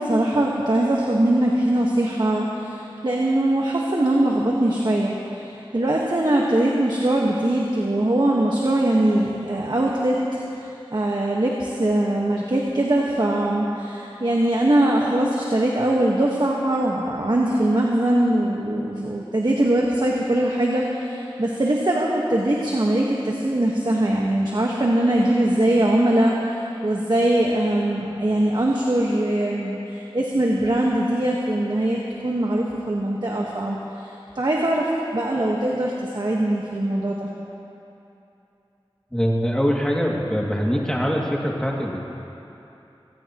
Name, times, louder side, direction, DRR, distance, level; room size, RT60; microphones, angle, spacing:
voice 1, 0.0-37.3, right 1 dB, 50° right, -3 dB, 1.4 m, -22 dB
voice 2, 39.1-42.0, equal, 10° left, -3 dB, 2.4 m, -23 dB
24.5 x 16.5 x 3.1 m, 2.9 s
wide cardioid pair, 55°, 10 cm